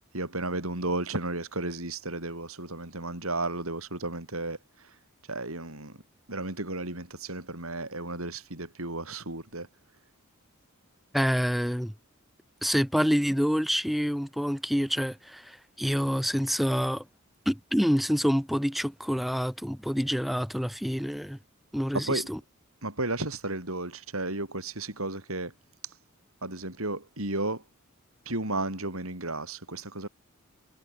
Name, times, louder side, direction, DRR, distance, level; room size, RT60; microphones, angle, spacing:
voice 1, 0.1-5.0 5.3-6.0 6.3-9.7 21.9-22.3 22.8-25.5 25.8-26.0 26.4-27.6 28.3-30.1, right 2 dB, 75° right, 7.4 m, -33 dB
voice 2, 11.1-11.9 12.6-17.1 17.5-21.4 21.7-22.4, equal, ahead, 3.4 m, -27 dB
head